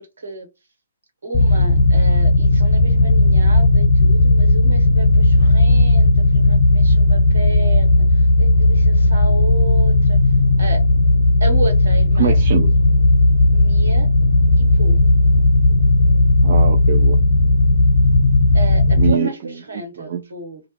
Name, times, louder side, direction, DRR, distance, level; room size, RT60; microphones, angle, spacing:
voice 1, 1.2-10.2 10.6-10.8 11.4-12.3 13.5-14.1 14.6-15.0 18.5-20.6, right 2 dB, 70° right, 1.2 m, -32 dB
sound 1, 1.3-19.1, left 2 dB, 40° left, 0.9 m, -14 dB
voice 2, 12.2-12.7 16.4-17.2 19.0-20.2, right 8 dB, 40° right, 0.4 m, -23 dB
2.4 x 2.0 x 2.9 m
figure-of-eight pair, 130°, 0 cm